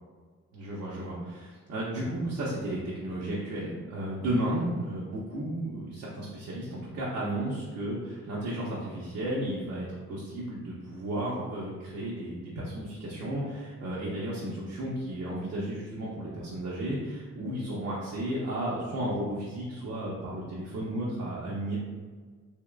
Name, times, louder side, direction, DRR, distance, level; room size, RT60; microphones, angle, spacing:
voice 1, 0.5-21.8, right 1 dB, 75° right, -7 dB, 0.8 m, -33 dB
3.6 x 2.9 x 2.3 m, 1.5 s
cardioid pair, 90°, 30 cm